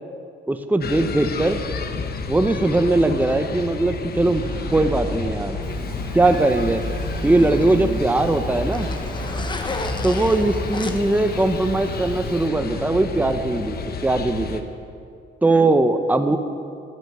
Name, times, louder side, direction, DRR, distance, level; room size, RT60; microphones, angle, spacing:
voice 1, 0.5-1.6 2.3-4.4 4.7-5.6 6.1-6.8 7.2-8.9 10.0-13.8 14.0-14.6 15.4-16.4, right 2 dB, 10° right, 8 dB, 0.8 m, -20 dB
sound 1, 0.8-14.6, left 5 dB, 50° left, 1.0 m, -31 dB
sound 2, 4.3-12.9, right 1 dB, 25° right, 3.2 m, -32 dB
Zipper (clothing), 5.6-12.5, left 3 dB, 25° left, 1.1 m, -36 dB
11.5 x 9.4 x 7.9 m, 2.4 s
cardioid pair, 90°, 20 cm